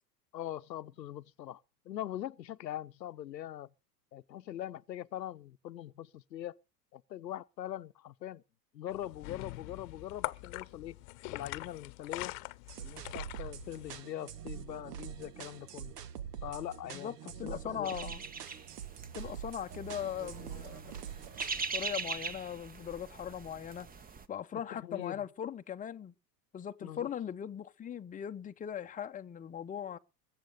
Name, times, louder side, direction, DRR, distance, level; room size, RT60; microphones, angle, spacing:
voice 1, 0.3-1.6 1.9-3.7 4.1-6.6 6.9-8.4 8.7-11.0 11.3-12.3 12.8-15.9 16.4-18.0 24.7-25.2 26.8-27.1, left 12 dB, 85° left, 0.8 m, -42 dB
sound 1, 8.9-14.0, left 22 dB, 50° left, 1.0 m, -43 dB
sound 2, 12.7-21.6, right 9 dB, 70° right, 1.6 m, -45 dB
voice 2, 16.9-18.2 19.1-20.8 21.7-23.9 24.3-26.1 26.5-30.0, left 9 dB, 15° left, 0.8 m, -39 dB
sound 3, 17.8-24.3, right 5 dB, 20° right, 1.1 m, -42 dB
21.5 x 7.7 x 6.7 m
hypercardioid pair, 95°, 49 cm